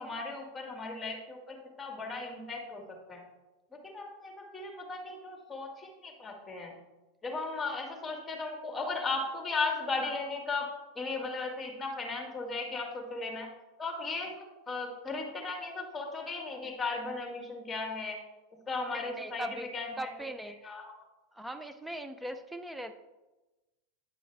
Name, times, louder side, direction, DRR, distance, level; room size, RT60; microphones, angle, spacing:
voice 1, 0.0-3.2 3.7-6.8 7.2-10.7 10.9-13.5 13.8-18.2 18.7-19.5 19.7-20.1 20.4-20.9, left 3 dB, 15° left, 1 dB, 2.1 m, -36 dB
voice 2, 18.9-19.7 20.0-20.6 21.3-23.0, right 1 dB, 5° right, 8 dB, 0.6 m, -40 dB
9.6 x 6.2 x 3.4 m, 1.1 s
hypercardioid pair, 110°, 0 cm